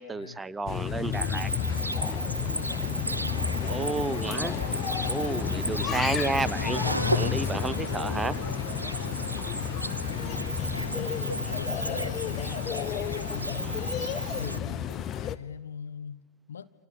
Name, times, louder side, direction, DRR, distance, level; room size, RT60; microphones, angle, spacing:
voice 1, 0.0-1.5 3.7-4.8 5.0-8.4 13.6-13.9 14.2-14.3, right 3 dB, 10° right, 17 dB, 0.9 m, -32 dB
sound 1, 0.7-15.4, left 10 dB, 30° left, 1.0 m, -32 dB
Cricket, 1.1-14.6, right 1 dB, 85° right, 1.0 m, -34 dB
voice 2, 2.5-3.1 9.5-16.7, left 7 dB, 70° left, 11 dB, 1.3 m, -43 dB
29.5 x 27.0 x 7.0 m, 1.1 s
figure-of-eight pair, 90°, 0 cm